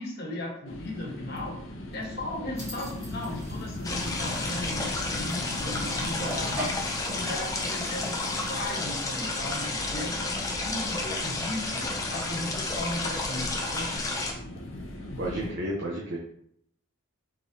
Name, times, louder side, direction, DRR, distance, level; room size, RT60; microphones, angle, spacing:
voice 1, 0.0-1.6 1.9-6.8 7.1-14.0, left 1 dB, 50° left, -2 dB, 1.4 m, -36 dB
sound 1, 0.7-15.5, left 1 dB, 70° left, 0.9 m, -39 dB
sound 2, 2.6-8.8, equal, 15° right, 1.6 m, -42 dB
sound 3, 3.8-14.3, left 2 dB, 15° left, 0.6 m, -32 dB
voice 2, 15.2-16.2, right 1 dB, 65° right, -3 dB, 0.8 m, -31 dB
4.8 x 3.7 x 2.8 m, 0.68 s
head